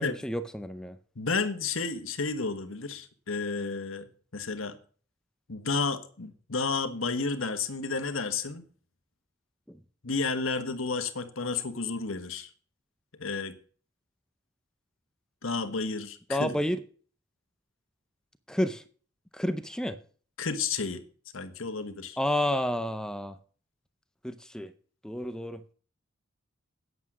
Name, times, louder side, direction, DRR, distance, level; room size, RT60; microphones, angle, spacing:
voice 1, 0.0-1.0 9.7-9.8 16.3-16.8 18.5-18.8 19.3-20.0 22.2-23.4 24.2-24.7 25.0-25.6, equal, 5° left, 0.6 m, -30 dB
voice 2, 1.2-4.8 5.5-8.6 10.0-12.5 13.2-13.6 15.4-16.6 20.4-21.0 21.3-22.2, left 4 dB, 85° left, 1.3 m, -31 dB
9.4 x 8.3 x 6.1 m
head